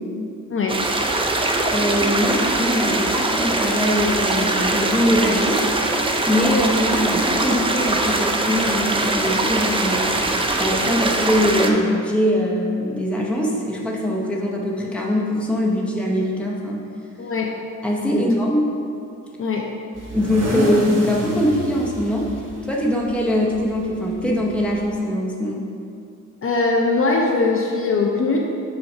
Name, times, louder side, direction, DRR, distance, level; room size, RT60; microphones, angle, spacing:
voice 1, 0.5-0.8 17.2-17.5 18.1-18.2 19.4-19.7 26.4-28.4, left 3 dB, 45° left, 0 dB, 0.5 m, -21 dB
sound 1, 0.7-11.7, right 2 dB, 20° right, 0.4 m, -22 dB
voice 2, 1.7-5.7 6.3-10.1 10.6-16.8 17.8-18.7 20.1-22.3 22.6-25.7, left 1 dB, 5° left, -3 dB, 0.7 m, -22 dB
sound 2, 19.9-24.9, right 1 dB, 85° right, 1.5 m, -30 dB
5.7 x 3.8 x 5.4 m, 2.5 s
wide cardioid pair, 155°, 31 cm